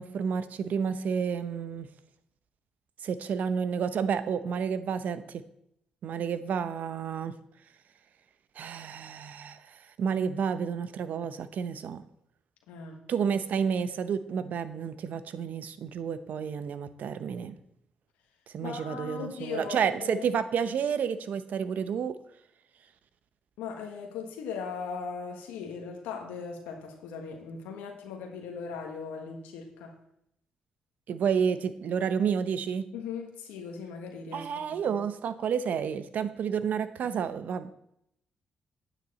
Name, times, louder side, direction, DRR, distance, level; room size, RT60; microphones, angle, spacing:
voice 1, 0.0-1.9 3.0-5.4 6.0-7.3 8.6-12.0 13.1-17.6 18.5-22.1 31.1-32.9 34.3-37.7, right 7 dB, 65° right, 12 dB, 0.7 m, -30 dB
voice 2, 12.7-13.0 18.6-20.2 23.6-29.9 32.9-35.0, left 6 dB, 85° left, 2 dB, 1.3 m, -39 dB
8.9 x 8.9 x 4.1 m, 0.75 s
supercardioid pair, 55°, 3 cm